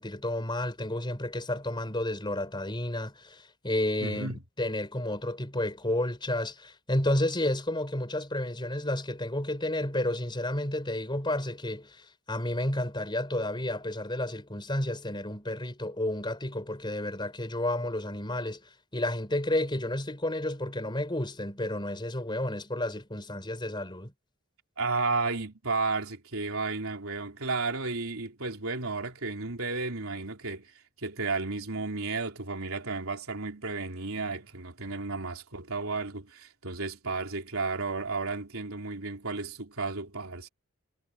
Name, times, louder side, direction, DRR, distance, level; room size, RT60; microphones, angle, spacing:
voice 1, 0.0-4.3 4.6-24.1, left 1 dB, 20° left, 3.9 m, -31 dB
voice 2, 4.0-4.4 24.8-30.7 31.0-40.5, right 3 dB, 80° right, 3.8 m, -33 dB
head